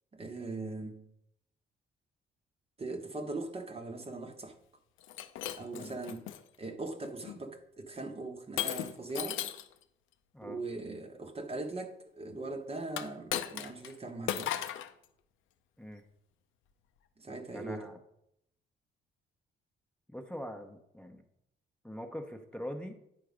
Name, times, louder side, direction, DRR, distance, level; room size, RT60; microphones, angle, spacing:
voice 1, 0.1-1.0 2.8-4.5 5.6-6.3 6.6-9.4 10.4-14.5 17.2-17.9, right 2 dB, 30° right, 1.0 m, -40 dB
Shatter, 5.0-6.4 7.0-7.4 8.6-9.7 12.9-13.9 14.3-14.9, left 11 dB, 80° left, 0.6 m, -36 dB
voice 2, 17.5-18.0 20.1-21.2 21.8-23.0, equal, 5° left, 0.9 m, -43 dB
9.5 x 4.5 x 5.0 m
cardioid pair, 90°, 20 cm